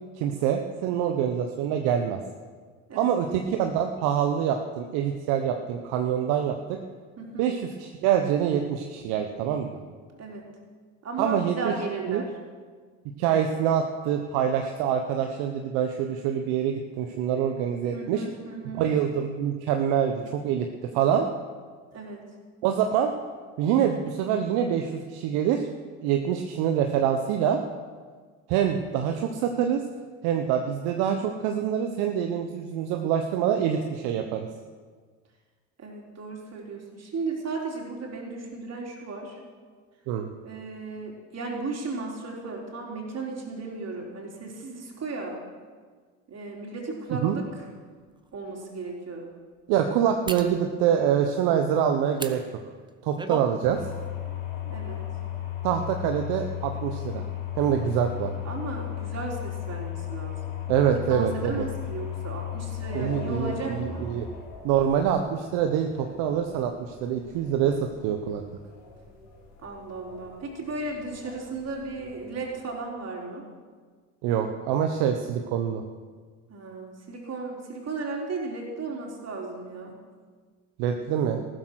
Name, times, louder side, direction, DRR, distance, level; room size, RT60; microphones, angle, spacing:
voice 1, 0.2-2.2 2.9-6.8 7.4-9.8 11.2-11.7 12.1-12.2 13.2-18.2 18.7-20.7 20.9-21.3 22.6-23.1 23.6-25.7 26.0-27.6 28.5-29.8 30.2-34.5 40.1-40.3 47.2-47.3 49.7-52.4 53.0-53.8 55.6-57.2 57.5-58.3 60.7-61.6 62.9-64.3 64.6-68.4 74.2-75.8 80.8-81.5, right 9 dB, 65° right, 4 dB, 1.2 m, -25 dB
voice 2, 7.2-7.5 10.1-10.5 11.0-12.3 17.9-18.8 21.9-22.2 35.8-39.4 40.4-45.4 46.3-47.4 48.3-49.3 54.6-55.0 58.4-64.1 69.6-73.5 76.5-80.0, right 3 dB, 40° right, -1 dB, 4.3 m, -35 dB
sound 1, 48.2-48.3 50.3-50.5 52.1-52.4 52.9-53.5 53.9-54.1, right 3 dB, 10° right, 1.1 m, -35 dB
sound 2, 53.6-72.6, left 10 dB, 70° left, 3.7 m, -36 dB
14.5 x 13.0 x 6.4 m, 1.5 s
hypercardioid pair, 80°, 40 cm